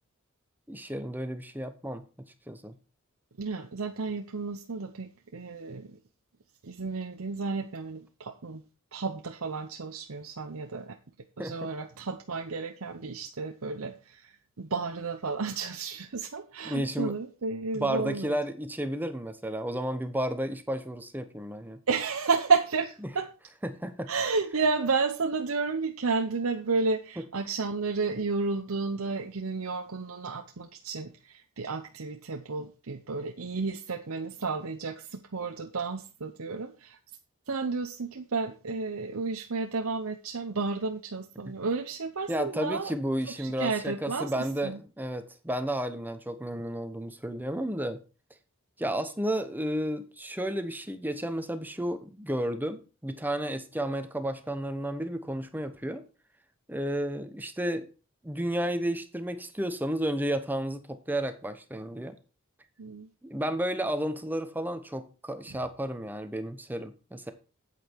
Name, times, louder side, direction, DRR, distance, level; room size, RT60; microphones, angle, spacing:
voice 1, 0.7-2.0 2.5-2.7 11.4-11.7 16.6-17.1 17.7-21.8 23.6-24.1 42.3-48.0 48.8-56.0 56.7-57.8 58.2-62.2 63.2-67.3, right 1 dB, 10° right, 9 dB, 1.0 m, -32 dB
voice 2, 3.4-6.0 6.6-8.6 8.9-11.0 11.4-18.4 21.9-23.3 24.1-37.0 37.5-42.9 43.4-44.8 62.8-63.1, right 4 dB, 80° right, 5 dB, 0.8 m, -32 dB
8.6 x 8.5 x 4.6 m, 0.34 s
head